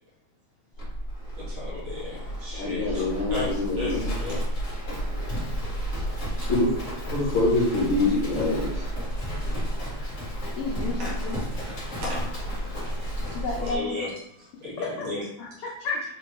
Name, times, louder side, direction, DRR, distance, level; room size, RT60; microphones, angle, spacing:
Livestock farm animals working animals, 0.7-13.8, equal, 40° left, 1.1 m, -31 dB
voice 1, 1.5-3.0 3.3-4.4 11.0-11.1 12.0-12.3 13.5-14.1 14.4-15.2, left 2 dB, 55° right, -6 dB, 2.3 m, -34 dB
voice 2, 2.5-4.3 6.5-6.7 7.1-8.8, left 2 dB, 60° left, -7 dB, 1.3 m, -25 dB
voice 3, 10.6-11.4 13.3-13.9 14.8-15.1 15.4-16.0, left 3 dB, 85° left, -3 dB, 1.2 m, -31 dB
4.4 x 3.0 x 3.0 m, 0.75 s
omnidirectional pair, 3.4 m